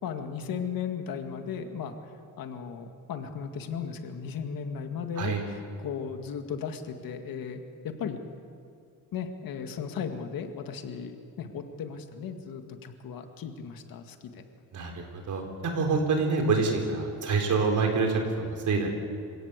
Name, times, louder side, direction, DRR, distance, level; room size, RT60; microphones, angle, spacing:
voice 1, 0.0-2.0 2.4-8.2 9.1-14.4, left 6 dB, 70° left, 6 dB, 2.1 m, -36 dB
voice 2, 14.7-18.9, right 4 dB, 55° right, 3 dB, 4.2 m, -26 dB
26.5 x 17.5 x 8.2 m, 2.5 s
cardioid pair, 145°, 35 cm